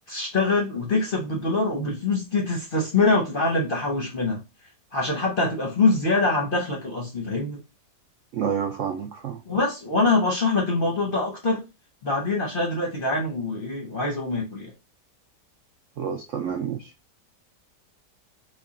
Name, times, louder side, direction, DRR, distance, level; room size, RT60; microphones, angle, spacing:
voice 1, 0.1-4.4 4.9-7.6 9.5-11.6 12.0-14.7, left 3 dB, 45° left, 0.7 m, -24 dB
voice 2, 8.3-9.4 16.0-16.9, right 7 dB, 80° right, 0.7 m, -29 dB
3.6 x 2.3 x 3.6 m
omnidirectional pair, 1.8 m